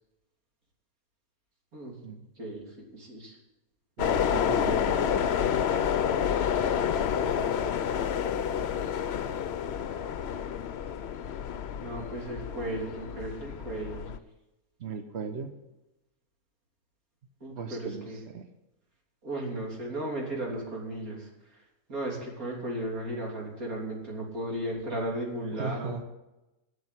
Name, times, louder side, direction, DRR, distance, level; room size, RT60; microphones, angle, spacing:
voice 1, 2.4-3.4 6.7-8.4 11.8-14.1 17.4-18.2 19.2-21.3 21.9-26.0, right 1 dB, 80° right, -2 dB, 3.9 m, -36 dB
sound 1, 4.0-14.2, left 8 dB, 55° left, 0.8 m, -29 dB
voice 2, 4.0-5.3 14.8-15.5 17.6-18.1 18.3-18.5 25.6-26.0, right 5 dB, 55° right, 6 dB, 1.2 m, -37 dB
11.5 x 7.1 x 9.8 m, 0.96 s
omnidirectional pair, 1.5 m